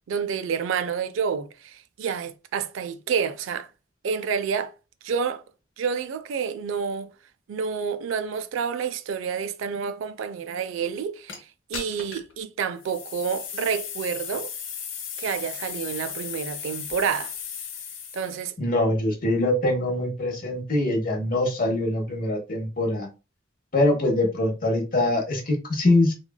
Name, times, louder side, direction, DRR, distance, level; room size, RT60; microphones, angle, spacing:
voice 1, 0.1-3.7 4.0-4.7 5.0-5.4 5.8-7.1 7.5-14.5 15.2-17.3 18.1-18.5, right 6 dB, 85° right, 0.3 m, -29 dB
sound 1, 11.3-11.4 11.7-12.3 12.8-18.4, left 7 dB, 85° left, 0.7 m, -36 dB
voice 2, 18.6-23.1 23.7-26.1, left 1 dB, 45° left, 0.9 m, -23 dB
3.1 x 2.3 x 2.2 m
head